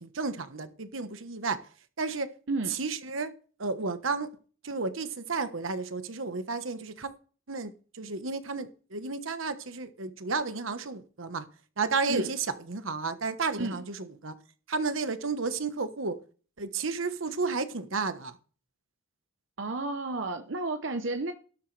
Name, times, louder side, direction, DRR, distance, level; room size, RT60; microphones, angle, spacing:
voice 1, 0.0-1.6 2.0-2.3 2.7-3.3 3.6-4.3 4.6-7.1 7.5-11.4 11.8-14.3 14.7-16.2 16.6-18.4, right 4 dB, 80° right, 1.2 m, -32 dB
voice 2, 2.5-2.8 12.1-12.3 13.6-13.8 19.6-21.3, right 2 dB, 65° right, 0.9 m, -32 dB
12.5 x 12.5 x 3.3 m
head